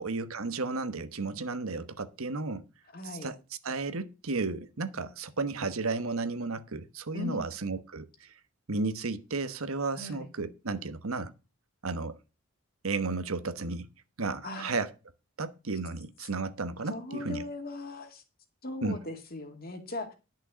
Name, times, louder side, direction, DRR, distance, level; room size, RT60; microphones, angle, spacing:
voice 1, 0.0-2.6 3.0-3.4 3.6-8.3 8.7-11.3 11.8-12.2 12.8-13.9 14.2-14.9 15.4-17.4 18.8-19.0, right 3 dB, 75° right, 1.1 m, -33 dB
voice 2, 2.9-3.3 7.1-7.5 10.0-10.3 14.4-14.7 16.8-18.2 18.6-20.1, left 2 dB, 45° left, 2.3 m, -39 dB
11.0 x 6.3 x 6.2 m
head